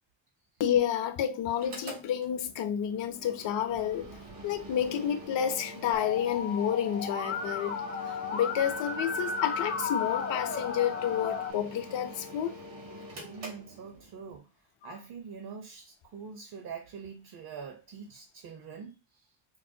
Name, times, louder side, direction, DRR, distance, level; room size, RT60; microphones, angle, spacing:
voice 1, 0.6-4.2 4.4-7.8 8.0-12.6, left 9 dB, 65° left, 0.6 m, -30 dB
Mechanical fan, 1.5-14.3, equal, 80° right, 1.9 m, -45 dB
Musical instrument, 5.9-11.5, left 5 dB, 25° left, 0.4 m, -34 dB
voice 2, 13.0-19.3, right 6 dB, 55° right, 0.7 m, -45 dB
4.7 x 2.1 x 2.6 m
wide cardioid pair, 140°, 48 cm